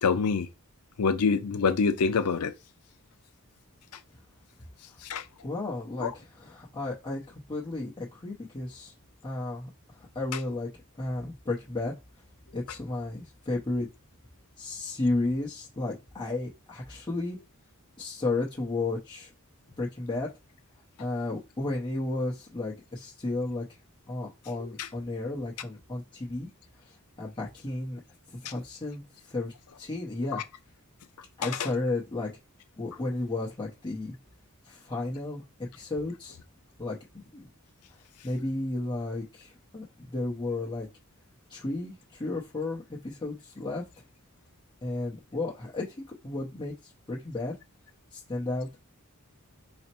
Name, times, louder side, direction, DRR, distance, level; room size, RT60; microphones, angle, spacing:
voice 1, 0.0-0.5 1.0-2.5 5.1-5.2 6.0-6.1 24.6-24.9, left 5 dB, 85° left, 0.5 m, -25 dB
voice 2, 5.4-8.9 9.2-9.7 10.0-10.7 11.0-11.9 12.5-13.9 14.6-17.4 18.0-19.3 19.8-20.3 21.0-23.6 24.1-26.5 27.2-28.0 28.3-29.5 29.8-30.4 31.4-32.3 32.8-34.1 34.7-35.4 35.7-36.4 36.8-37.0 37.3-37.5 38.2-40.9 41.5-43.8 44.8-45.9 46.2-46.7 47.1-47.5 48.1-48.8, left 2 dB, 20° left, 0.7 m, -33 dB
4.1 x 2.1 x 4.3 m
head